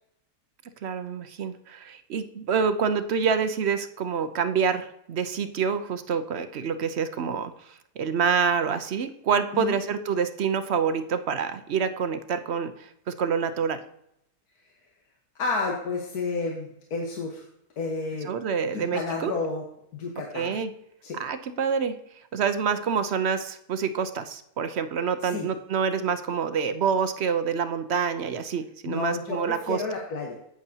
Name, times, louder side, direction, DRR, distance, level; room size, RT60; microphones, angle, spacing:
voice 1, 0.8-13.8 18.2-19.3 20.3-20.7 21.1-22.0 22.3-29.8, right 6 dB, 55° right, 11 dB, 0.8 m, -27 dB
voice 2, 15.4-17.5 17.8-18.3 18.7-19.6 20.0-20.6 21.0-21.2 25.3-25.5 28.9-30.3, left 3 dB, 90° left, -1 dB, 1.8 m, -31 dB
11.0 x 8.8 x 2.8 m, 0.77 s
omnidirectional pair, 1.6 m